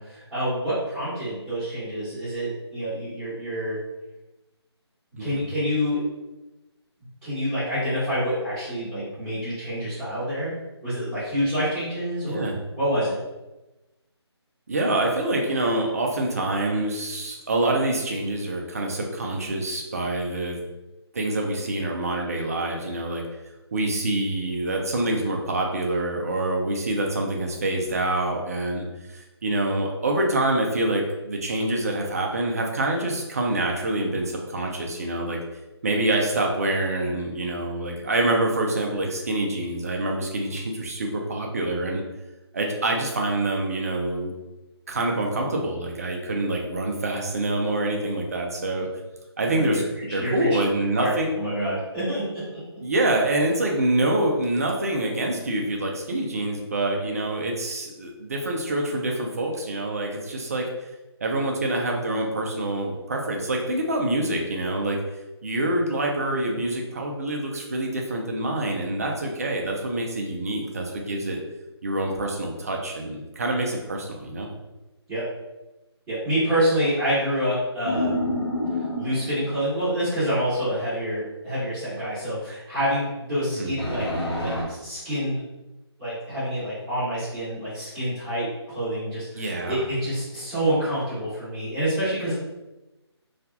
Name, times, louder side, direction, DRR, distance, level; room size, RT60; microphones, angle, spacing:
voice 1, 0.0-3.8 5.2-6.0 7.2-10.5 10.8-12.5 12.8-13.2 49.5-50.6 50.9-52.6 75.1-75.3 76.1-78.2 79.0-84.1 84.4-85.4 86.0-92.3, equal, 10° right, -17 dB, 1.0 m, -27 dB
voice 2, 5.2-5.5 12.2-12.5 14.7-20.6 21.1-23.2 23.7-35.4 35.8-42.0 42.5-44.3 44.9-48.9 49.4-49.8 50.1-51.3 52.8-60.7 61.2-65.0 65.4-71.4 71.8-74.5 83.5-83.7 89.3-89.8, right 1 dB, 35° right, 1 dB, 0.4 m, -26 dB
sound 1, 77.9-79.7 83.8-84.6, left 1 dB, 60° left, 1.0 m, -28 dB
2.7 x 2.4 x 2.3 m, 1.0 s
figure-of-eight pair, 165°, 14 cm